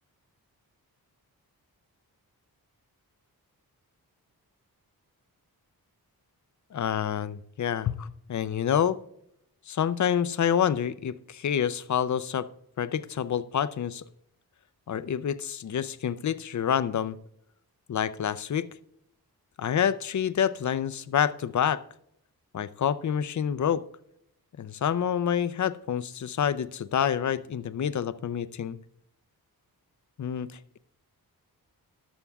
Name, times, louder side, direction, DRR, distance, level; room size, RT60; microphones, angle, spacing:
voice 1, 6.7-9.0 9.7-12.5 12.8-14.0 14.9-17.2 17.9-18.7 19.6-21.8 22.5-23.8 24.6-28.8 30.2-30.8, left 8 dB, 50° left, 16 dB, 0.5 m, -27 dB
14.0 x 11.0 x 2.3 m, 0.73 s
cardioid pair, 75°, 38 cm